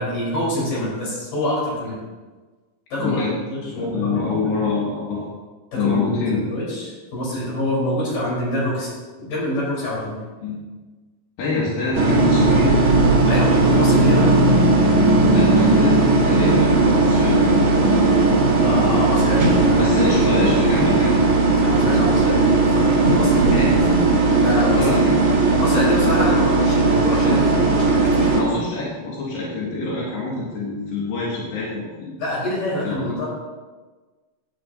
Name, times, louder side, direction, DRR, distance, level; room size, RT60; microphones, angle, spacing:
voice 1, 0.0-2.0 2.9-3.2 3.5-4.6 5.7-6.0 6.5-8.9 9.2-10.1 11.8-11.9 13.3-14.6 18.6-19.9 21.6-23.6 24.4-24.9 25.6-28.5 32.2-33.3, left 1 dB, 65° left, -6 dB, 5.7 m, -25 dB
voice 2, 3.0-3.4 3.7-5.3 5.8-6.4 10.4-10.6 11.4-12.9 15.3-18.4 19.8-21.2 23.4-24.0 24.7-25.3 28.3-32.1 32.8-33.1, left 3 dB, 90° left, -6 dB, 3.9 m, -25 dB
sound 1, 11.9-28.4, right 3 dB, 45° right, 2.5 m, -17 dB
16.5 x 9.5 x 2.8 m, 1.3 s
omnidirectional pair, 4.1 m